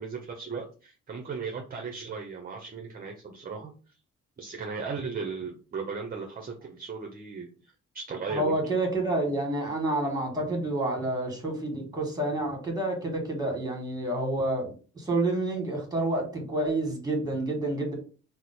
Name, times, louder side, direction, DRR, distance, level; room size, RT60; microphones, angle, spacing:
voice 1, 0.0-3.7 4.4-7.5 7.9-8.5, right 5 dB, 30° right, 2 dB, 0.6 m, -36 dB
voice 2, 8.3-17.9, right 2 dB, 10° right, 1 dB, 1.4 m, -29 dB
2.9 x 2.1 x 4.1 m, 0.37 s
cardioid pair, 90°, 30 cm